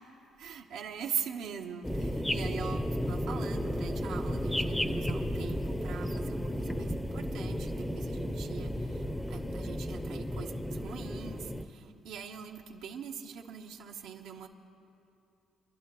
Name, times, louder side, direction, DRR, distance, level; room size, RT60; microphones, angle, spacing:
voice 1, 0.4-14.5, right 7 dB, 80° right, 3 dB, 1.1 m, -42 dB
sound 1, 1.8-11.6, equal, 10° left, 0.7 m, -33 dB
26.0 x 11.0 x 3.1 m, 2.7 s
supercardioid pair, 75°, 0 cm